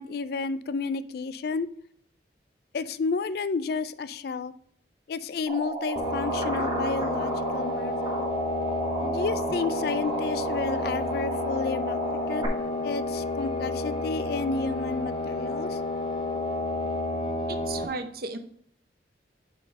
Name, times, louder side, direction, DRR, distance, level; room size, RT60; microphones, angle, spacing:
voice 1, 0.0-1.7 2.7-4.5 5.1-8.3 9.0-12.0 12.3-12.4 12.8-15.8, left 4 dB, 60° left, 14 dB, 0.4 m, -31 dB
sound 1, 5.5-12.5, right 3 dB, 25° right, 1.3 m, -33 dB
sound 2, 6.0-17.8, left 2 dB, 30° left, 1.0 m, -30 dB
voice 2, 17.5-18.4, right 3 dB, 55° right, 9 dB, 0.7 m, -34 dB
5.2 x 5.0 x 5.1 m, 0.65 s
head